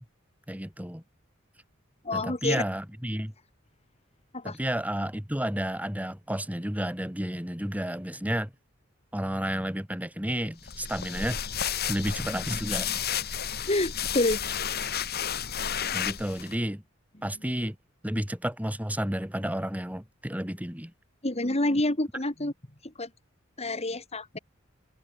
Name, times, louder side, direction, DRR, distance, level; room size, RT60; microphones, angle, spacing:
voice 1, 0.5-1.0 2.1-3.3 4.4-8.5 9.1-11.4 11.9-13.0 15.9-16.8 17.2-17.8 18.0-20.9, equal, 10° right, 3.8 m, -31 dB
voice 2, 2.0-2.6 4.3-4.6 13.7-14.4 21.2-22.5 22.8-23.1 23.6-24.4, left 2 dB, 30° left, 3.0 m, -28 dB
sound 1, 10.6-16.5, left 8 dB, 55° left, 2.1 m, -32 dB
head